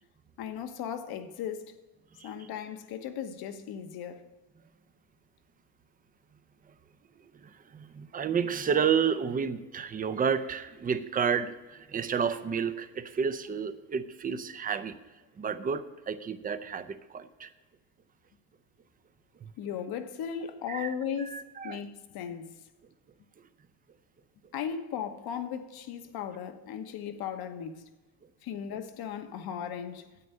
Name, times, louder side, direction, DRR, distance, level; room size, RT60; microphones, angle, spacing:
voice 1, 0.4-1.8 2.2-4.3 19.6-22.5 24.5-27.9 28.4-30.1, left 8 dB, 50° left, 1.1 m, -37 dB
voice 2, 7.4-15.0 15.4-17.5 20.7-21.8, right 7 dB, 20° right, 0.5 m, -31 dB
9.7 x 8.6 x 5.5 m
cardioid pair, 125°, 47 cm